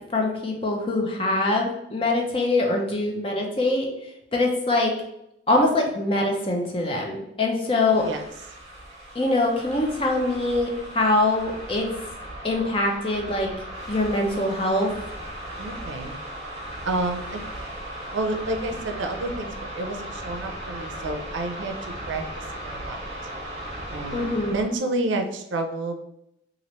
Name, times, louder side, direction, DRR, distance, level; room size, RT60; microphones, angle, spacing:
voice 1, 0.1-3.9 4.3-4.9 5.5-8.1 9.1-11.9 12.4-13.5 13.9-14.9 24.1-24.6, left 2 dB, 30° left, 0 dB, 0.5 m, -23 dB
sound 1, 7.7-24.8, right 1 dB, 35° right, 0.9 m, -37 dB
voice 2, 15.6-16.2 16.8-17.4 18.1-23.0 23.9-26.0, right 2 dB, 75° right, 4 dB, 0.4 m, -30 dB
3.0 x 2.5 x 2.9 m, 0.81 s
head